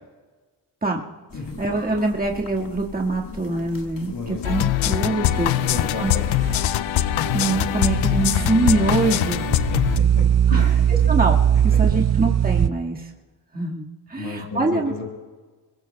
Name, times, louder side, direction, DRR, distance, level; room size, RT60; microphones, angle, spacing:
sound 1, 1.3-6.5, left 4 dB, 45° left, 1.8 m, -38 dB
voice 1, 1.6-6.1 7.3-9.5 10.5-10.6 11.1-11.4 11.6-13.1 13.5-14.9, right 3 dB, 20° right, -1 dB, 1.9 m, -24 dB
voice 2, 4.1-4.7 5.2-6.4 9.4-10.2 10.5-10.9 11.7-12.0 14.2-15.0, left 3 dB, 65° left, 1 dB, 5.4 m, -33 dB
sound 2, 4.4-10.0, left 14 dB, 80° left, 0.6 m, -22 dB
sound 3, 5.3-12.7, right 9 dB, 35° right, 0.6 m, -21 dB
27.5 x 21.5 x 2.3 m, 1.4 s
supercardioid pair, 45°, 45 cm